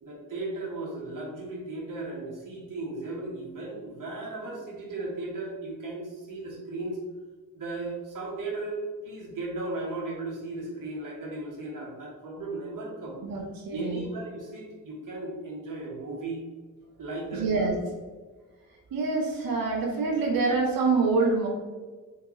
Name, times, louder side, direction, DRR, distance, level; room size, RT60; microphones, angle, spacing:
voice 1, 0.0-7.0 7.5-13.2 13.7-16.4 17.0-17.5, right 2 dB, 65° right, -3 dB, 1.0 m, -36 dB
voice 2, 13.2-14.1 17.3-17.7 18.9-21.5, right 4 dB, 85° right, 0 dB, 0.7 m, -26 dB
3.5 x 2.8 x 3.0 m, 1.4 s
cardioid pair, 65°, 34 cm